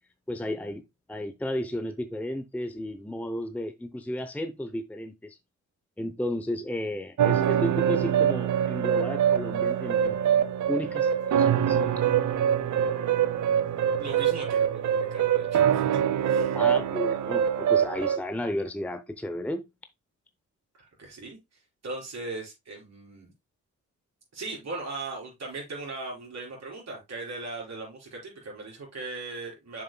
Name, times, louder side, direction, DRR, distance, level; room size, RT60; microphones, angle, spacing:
voice 1, 0.3-0.8 1.1-5.4 6.0-11.8 16.5-19.7, left 1 dB, 5° left, 0.7 m, -33 dB
sound 1, 7.2-18.2, right 9 dB, 75° right, 0.7 m, -24 dB
voice 2, 14.0-16.6 20.8-21.4 21.8-23.3 24.3-29.8, right 3 dB, 60° right, 4.2 m, -38 dB
7.2 x 6.5 x 2.2 m
cardioid pair, 70°, 30 cm